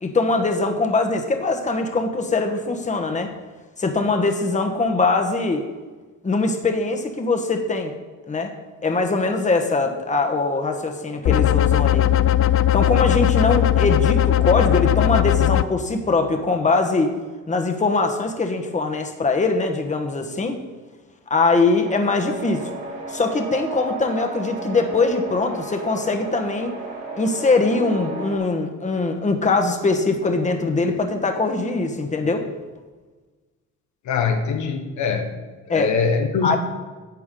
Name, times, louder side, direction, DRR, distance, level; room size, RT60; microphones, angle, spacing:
voice 1, 0.0-3.3 3.8-5.6 6.2-7.9 8.3-8.5 8.8-12.1 12.7-17.1 17.5-20.6 21.3-22.6 23.1-26.8 27.2-32.4 35.7-35.9 36.4-36.6, left 3 dB, 25° left, 4 dB, 1.2 m, -22 dB
sound 1, 11.3-15.6, left 12 dB, 50° left, 0.4 m, -18 dB
sound 2, 21.8-28.4, right 3 dB, 65° right, 3.0 m, -33 dB
voice 2, 34.1-35.3 35.7-36.6, left 5 dB, 75° left, 4 dB, 1.2 m, -22 dB
11.5 x 7.8 x 3.8 m, 1.3 s
cardioid pair, 90°, 30 cm